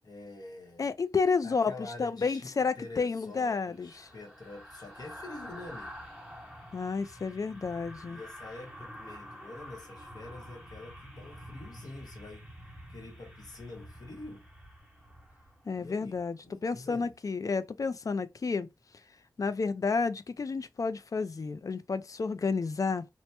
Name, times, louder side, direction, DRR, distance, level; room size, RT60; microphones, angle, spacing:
voice 1, 0.0-0.9 1.4-6.1 8.1-12.5 12.9-14.4 15.7-17.1, left 2 dB, 75° left, 0.9 m, -46 dB
voice 2, 0.8-1.7 2.0-4.1 6.7-8.2 15.7-18.7 19.4-23.1, left 4 dB, 55° left, 0.3 m, -31 dB
sound 1, 2.7-16.0 16.4-16.6, equal, 10° right, 1.1 m, -48 dB
2.9 x 2.1 x 3.2 m
wide cardioid pair, 80°, 7 cm